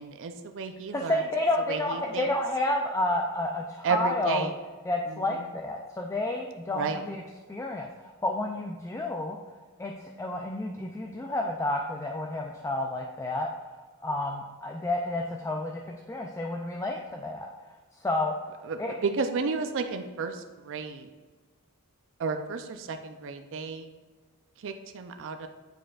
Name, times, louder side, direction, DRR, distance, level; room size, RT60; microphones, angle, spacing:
voice 1, 0.0-1.2 1.7-2.3 3.8-4.5 5.1-5.4 6.7-7.0 18.6-21.1 22.2-23.9 24.6-25.5, right 4 dB, 60° right, 6 dB, 0.5 m, -32 dB
voice 2, 0.9-4.5 4.9-7.2 7.5-9.4 9.8-9.9 10.2-13.5 14.0-17.5 18.0-18.3 18.8-19.0, left 2 dB, 15° left, 1 dB, 0.4 m, -30 dB
9.0 x 5.0 x 2.4 m, 1.3 s
head